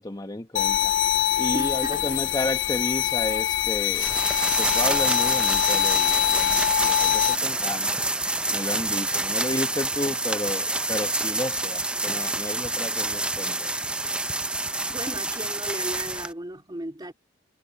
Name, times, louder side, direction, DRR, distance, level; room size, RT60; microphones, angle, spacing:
voice 1, 0.0-4.2 4.6-8.0 8.5-13.7, left 1 dB, 20° left, 1.2 m, -32 dB
sound 1, 0.6-7.4, left 12 dB, 70° left, 0.4 m, -24 dB
voice 2, 1.5-2.2 14.9-17.1, right 1 dB, 20° right, 3.0 m, -35 dB
sound 2, 3.9-16.3, right 2 dB, 5° right, 0.6 m, -27 dB
head